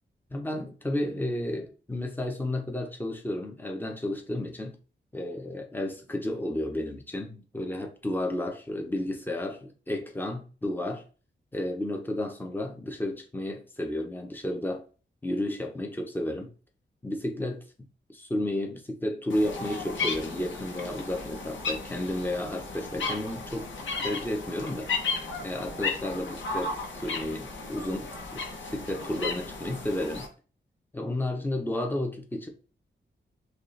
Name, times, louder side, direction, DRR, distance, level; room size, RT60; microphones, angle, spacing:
voice 1, 0.3-4.8 5.1-11.0 11.5-14.8 15.2-16.5 17.0-17.6 18.1-23.7 24.0-24.9 25.4-28.4 28.7-30.3 30.9-32.5, left 1 dB, 10° left, 0.7 m, -32 dB
sound 1, 19.3-30.3, left 4 dB, 85° left, 0.9 m, -35 dB
5.1 x 2.4 x 3.2 m
wide cardioid pair, 150°, 19 cm